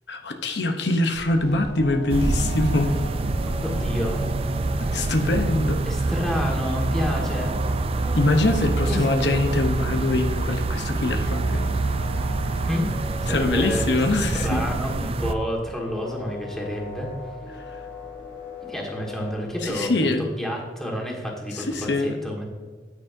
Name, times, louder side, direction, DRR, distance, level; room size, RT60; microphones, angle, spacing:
voice 1, 0.1-2.9 4.8-6.1 8.1-11.6 13.3-14.6 17.5-17.8 19.6-20.3 21.5-22.2, left 2 dB, 80° left, 5 dB, 0.8 m, -24 dB
sound 1, 1.1-10.2, right 1 dB, 85° right, 0.9 m, -40 dB
sound 2, 1.4-19.7, left 3 dB, 50° left, 2.6 m, -40 dB
sound 3, 2.1-15.3, right 3 dB, 35° right, 0.4 m, -26 dB
voice 2, 3.6-4.3 5.8-7.6 8.9-9.0 12.6-12.9 13.2-13.8 14.4-17.1 18.7-20.1 20.4-22.4, equal, 5° left, -2 dB, 1.6 m, -29 dB
9.6 x 9.0 x 2.6 m, 1.5 s
head